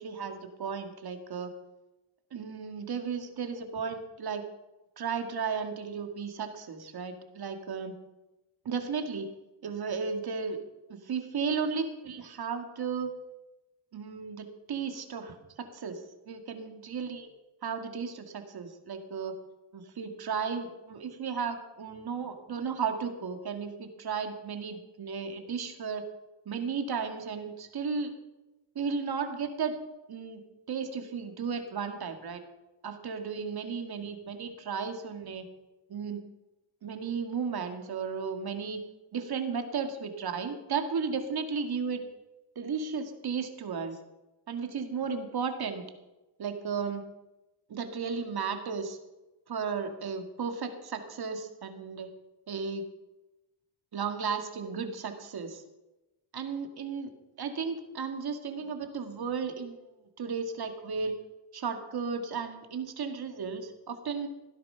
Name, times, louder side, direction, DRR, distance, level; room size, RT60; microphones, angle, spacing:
voice 1, 0.0-1.5 2.3-4.4 5.0-7.9 8.6-9.3 9.6-10.6 10.9-13.1 13.9-17.3 17.6-19.4 19.7-26.0 26.5-28.1 28.8-29.7 30.1-30.4 30.7-32.4 32.8-35.4 35.9-36.2 36.8-38.8 39.1-42.0 42.6-44.0 44.5-45.8 46.4-47.0 47.7-49.0 49.5-52.1 52.5-52.8 53.9-55.6 56.3-57.1 57.4-59.8 60.2-61.1 61.5-64.3, right 5 dB, 50° right, 6 dB, 2.2 m, -34 dB
16.5 x 10.5 x 5.8 m, 1.0 s
cardioid pair, 95°, 47 cm